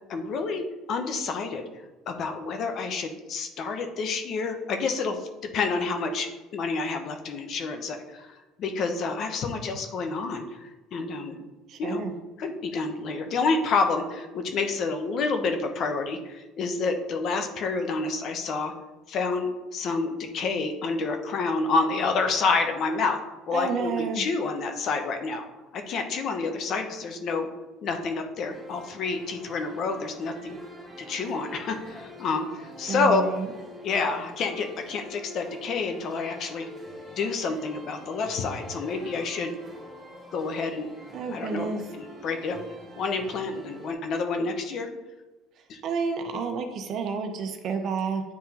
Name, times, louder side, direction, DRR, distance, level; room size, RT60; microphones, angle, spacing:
voice 1, 0.1-1.6 2.1-5.3 5.5-11.4 11.8-12.0 12.4-18.7 19.1-23.2 23.5-25.5 25.7-27.5 27.8-30.6 31.1-33.2 33.8-36.7 37.2-39.5 40.3-40.9 41.3-41.7 42.0-42.6 43.0-44.9 45.7-45.8, left 4 dB, 50° left, 6 dB, 0.8 m, -28 dB
voice 2, 11.7-12.1 23.5-24.2 32.9-33.5 41.1-41.8 45.8-48.2, right 5 dB, 50° right, 5 dB, 0.8 m, -30 dB
sound 1, 28.5-43.9, equal, 15° right, 2.0 m, -45 dB
9.7 x 3.6 x 2.9 m, 1.1 s
cardioid pair, 120°, 0 cm